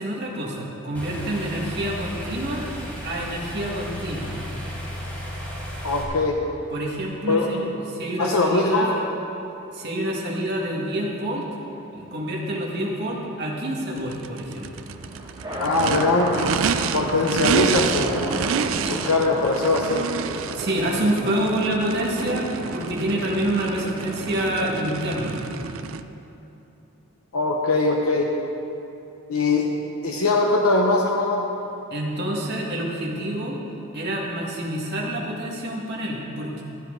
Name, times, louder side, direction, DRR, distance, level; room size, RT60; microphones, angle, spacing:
voice 1, 0.0-2.6 3.0-4.3 6.7-9.1 9.7-11.4 11.9-14.8 20.5-25.4 31.9-33.6 33.9-36.6, right 1 dB, 50° right, -3 dB, 1.9 m, -27 dB
sound 1, 0.9-6.0, equal, 5° left, 1.9 m, -34 dB
voice 2, 5.8-6.4 7.3-7.5 8.2-8.9 15.6-16.6 16.9-18.3 18.8-20.0 27.3-28.3 29.3-29.7 30.0-31.4, left 3 dB, 85° left, 0 dB, 0.9 m, -21 dB
Race car auto racing / Idling / Accelerating revving vroom, 14.0-26.0, right 6 dB, 70° right, 0.4 m, -29 dB
sound 2, 14.7-24.9, right 1 dB, 20° right, 1.9 m, -34 dB
14.5 x 11.5 x 3.9 m, 2.9 s
head